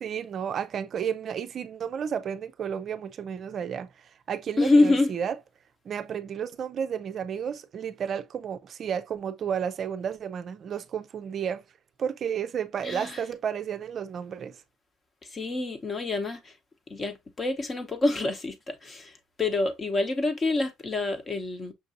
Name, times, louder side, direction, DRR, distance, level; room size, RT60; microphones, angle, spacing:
voice 1, 0.0-3.9 4.3-5.3 5.9-11.6 12.0-14.6, right 8 dB, 50° right, 0.4 m, -32 dB
voice 2, 4.6-5.1 12.8-13.2 15.3-16.5 16.9-19.1 19.4-21.7, left 2 dB, 30° left, 0.9 m, -26 dB
5.9 x 2.6 x 2.5 m
cardioid pair, 100°, 0 cm